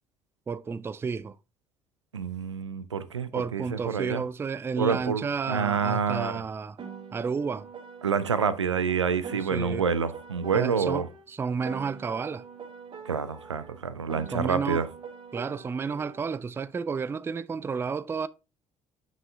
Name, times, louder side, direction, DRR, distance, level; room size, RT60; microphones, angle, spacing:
voice 1, 0.5-1.4 3.3-6.8 7.1-7.7 9.3-9.8 10.5-12.4 14.3-14.9 15.3-18.3, right 5 dB, 15° right, 0.3 m, -31 dB
voice 2, 2.1-4.2 4.8-6.4 8.0-11.1 13.1-14.9, right 6 dB, 85° right, 0.4 m, -28 dB
Piano, 6.8-11.2 11.6-16.2, right 5 dB, 35° right, 1.7 m, -44 dB
9.2 x 5.9 x 2.3 m
figure-of-eight pair, 50°, 15 cm